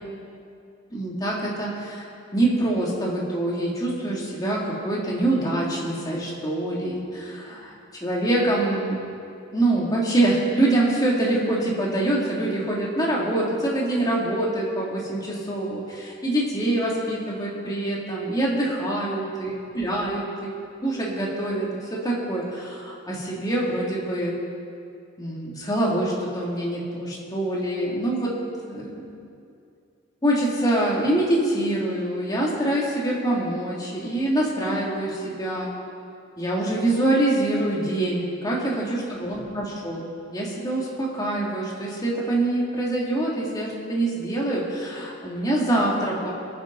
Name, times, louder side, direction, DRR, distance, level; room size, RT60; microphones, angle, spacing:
voice 1, 0.9-2.0 2.3-7.7 8.0-9.0 9.5-20.5 20.8-24.3 25.2-28.3 28.7-29.1 30.2-35.7 36.4-40.1 40.3-46.3, right 1 dB, 20° left, -5 dB, 3.1 m, -25 dB
24.5 x 9.8 x 4.2 m, 2.4 s
head